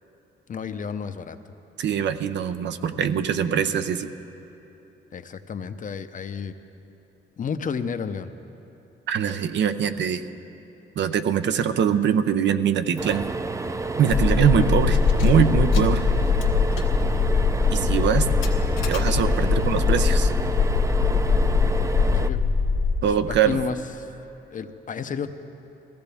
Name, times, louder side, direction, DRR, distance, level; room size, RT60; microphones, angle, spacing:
voice 1, 0.5-1.4 5.1-6.5 7.4-8.3 14.7-14.8 22.1-22.4 23.0-24.1 24.5-25.3, left 6 dB, 40° left, 10 dB, 0.7 m, -31 dB
voice 2, 1.8-4.1 9.1-10.2 11.0-13.2 14.0-16.0 17.7-18.3 18.9-20.3 23.0-23.6, right 8 dB, 65° right, 10 dB, 0.7 m, -23 dB
Keys jangling, 12.9-13.1 13.5-13.6 14.0-14.4 14.8-19.6, left 5 dB, 85° left, 1.7 m, -40 dB
sound 1, 13.0-22.3, right 3 dB, 15° right, 0.5 m, -30 dB
sound 2, 14.1-23.6, left 5 dB, 65° left, 1.1 m, -22 dB
20.5 x 15.5 x 3.5 m, 2.9 s
cardioid pair, 90°, 20 cm